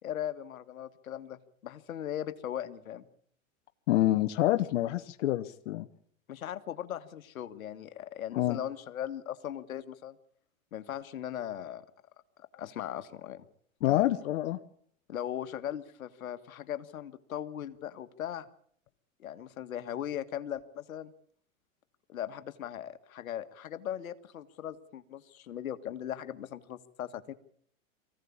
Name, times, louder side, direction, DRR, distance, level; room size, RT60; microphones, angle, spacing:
voice 1, 0.0-3.1 6.3-10.2 10.7-11.8 12.4-13.4 13.9-14.0 15.1-18.4 19.2-21.1 22.1-27.3, left 10 dB, 85° left, 11 dB, 1.7 m, -39 dB
voice 2, 3.9-5.9 8.3-8.6 13.8-14.6, left 15 dB, 65° left, 8 dB, 1.2 m, -27 dB
24.0 x 16.0 x 8.6 m, 0.65 s
hypercardioid pair, 135°, 41 cm